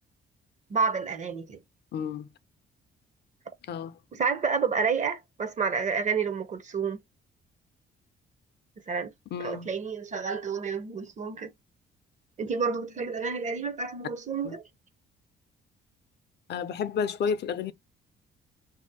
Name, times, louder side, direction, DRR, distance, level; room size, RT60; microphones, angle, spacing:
voice 1, 0.7-1.6 4.1-7.0 8.9-9.1 9.4-11.5 12.4-14.6, right 5 dB, 40° right, 0.6 m, -29 dB
voice 2, 1.9-2.3 3.7-3.9 9.3-9.7 14.4-14.5 16.5-17.7, left 6 dB, 60° left, 0.5 m, -31 dB
2.7 x 2.0 x 3.9 m
cardioid pair, 90°, 20 cm